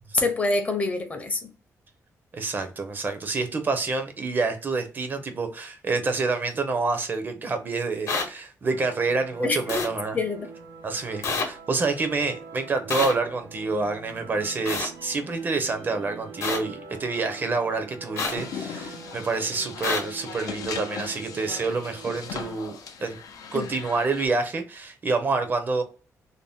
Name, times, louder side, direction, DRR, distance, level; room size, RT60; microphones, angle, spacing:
voice 1, 0.1-1.5 9.4-9.9 10.1-10.5 23.5-23.7, left 3 dB, 25° left, 0.5 m, -26 dB
voice 2, 2.3-10.2 10.8-23.2 23.5-25.8, right 3 dB, 35° right, 0.5 m, -28 dB
sound 1, 8.1-8.2 9.7-9.9 11.2-11.4 12.9-13.1 14.6-14.9 16.4-16.6 18.2-18.3 19.8-20.0, left 4 dB, 55° left, 0.8 m, -26 dB
sound 2, 8.6-22.5, right 4 dB, 80° right, 0.6 m, -45 dB
sound 3, 18.4-24.3, left 6 dB, 85° left, 0.5 m, -38 dB
2.6 x 2.0 x 3.3 m
wide cardioid pair, 150°, 6 cm